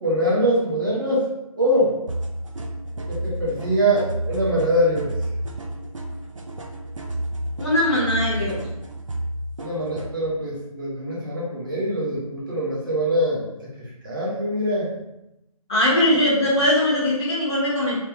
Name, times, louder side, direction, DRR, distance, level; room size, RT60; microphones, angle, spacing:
voice 1, 0.0-1.3 1.6-2.0 3.1-5.2 9.6-13.7 14.0-14.9, equal, 35° right, -6 dB, 1.1 m, -23 dB
sound 1, 2.1-10.1, right 1 dB, 60° right, 0.6 m, -31 dB
voice 2, 7.6-8.6 15.7-18.0, left 1 dB, 10° left, -16 dB, 0.7 m, -20 dB
3.4 x 3.1 x 3.4 m, 0.89 s
figure-of-eight pair, 170°, 19 cm